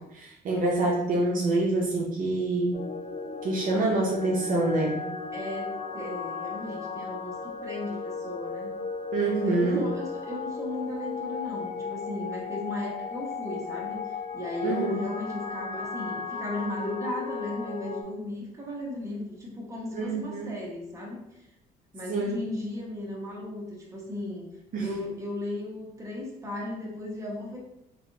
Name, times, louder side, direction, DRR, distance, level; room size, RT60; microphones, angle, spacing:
voice 1, 0.1-2.8 3.4-5.0 9.1-9.8 14.6-14.9 19.9-20.5 22.1-22.3 24.7-24.9, right 2 dB, 55° right, -2 dB, 0.6 m, -26 dB
sound 1, 2.7-18.0, left 5 dB, 40° left, 0.6 m, -36 dB
voice 2, 5.3-8.7 9.4-21.5 21.9-24.4 24.8-27.6, left 1 dB, 20° right, -3 dB, 1.0 m, -36 dB
3.3 x 2.5 x 2.7 m, 0.90 s
cardioid pair, 110°, 17 cm